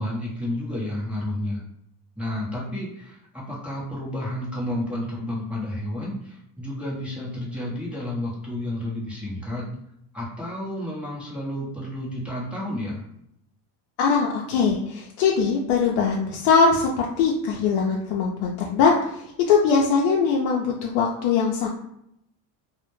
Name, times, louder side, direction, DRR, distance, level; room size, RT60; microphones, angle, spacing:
voice 1, 0.0-1.6 2.2-9.7 10.1-13.1, left 1 dB, 5° right, -6 dB, 0.7 m, -31 dB
voice 2, 14.0-21.7, left 5 dB, 70° left, -1 dB, 0.5 m, -21 dB
2.1 x 2.0 x 3.0 m, 0.76 s
cardioid pair, 125°, 47 cm